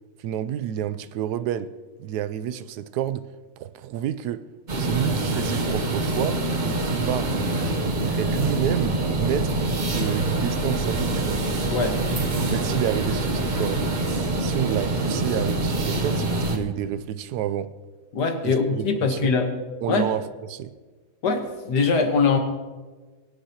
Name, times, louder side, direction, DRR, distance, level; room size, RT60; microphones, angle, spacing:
voice 1, 0.2-1.7 2.0-3.2 3.6-4.4 4.8-7.3 8.2-11.4 12.4-13.8 14.4-17.7 18.4-19.4 19.8-20.7, right 10 dB, 80° right, 1.1 m, -29 dB
sound 1, 4.7-16.6, right 2 dB, 35° right, 0.9 m, -25 dB
voice 2, 18.1-19.5 19.9-20.1 21.2-22.4, left 4 dB, 90° left, 1.8 m, -22 dB
21.5 x 10.0 x 2.9 m
omnidirectional pair, 1.7 m